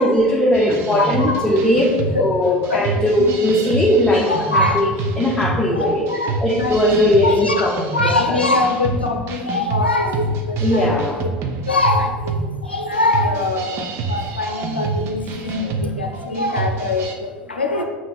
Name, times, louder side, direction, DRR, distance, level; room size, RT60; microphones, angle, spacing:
voice 1, 0.0-4.9 5.2-6.0 6.4-8.4 10.6-11.2 15.6-15.7, left 1 dB, 10° left, -4 dB, 1.0 m, -18 dB
sound 1, 0.5-17.1, right 3 dB, 50° right, 0.7 m, -27 dB
voice 2, 1.0-1.4 2.7-2.8 3.2-3.3 4.3-4.8 5.7-7.7 7.9-10.9 11.7-17.8, left 2 dB, 90° left, 4 dB, 0.6 m, -23 dB
5.7 x 3.2 x 5.5 m, 1.4 s
figure-of-eight pair, 75°, 5 cm